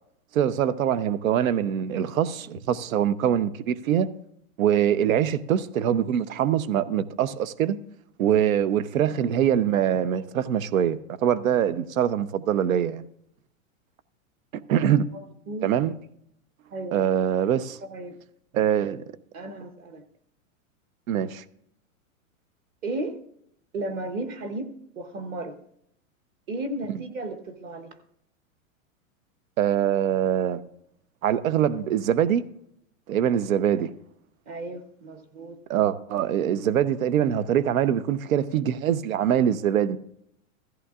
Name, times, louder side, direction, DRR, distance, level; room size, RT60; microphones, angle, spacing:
voice 1, 0.3-4.1 4.6-7.8 8.2-13.0 14.7-15.1 15.6-15.9 16.9-17.8 18.5-19.0 21.1-21.4 26.9-27.0 29.6-30.6 31.2-32.5 33.1-33.9 35.7-40.0, right 9 dB, 75° right, 0.9 m, -23 dB
voice 2, 15.1-15.7 16.7-17.0 17.9-18.2 19.3-20.0 22.8-23.2 23.7-24.7 25.0-25.6 26.5-28.0 34.5-35.6, right 2 dB, 20° right, 0.8 m, -34 dB
16.0 x 14.0 x 2.4 m
supercardioid pair, 160°, 41 cm